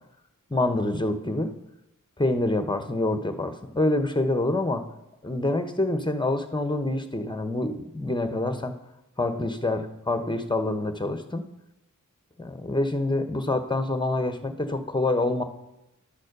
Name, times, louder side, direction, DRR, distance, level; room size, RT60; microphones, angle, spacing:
voice 1, 0.5-1.5 2.2-4.8 5.2-8.8 9.2-11.5 12.4-15.4, left 2 dB, 15° left, 7 dB, 1.0 m, -26 dB
11.5 x 4.2 x 6.6 m, 0.91 s
wide cardioid pair, 45°, 32 cm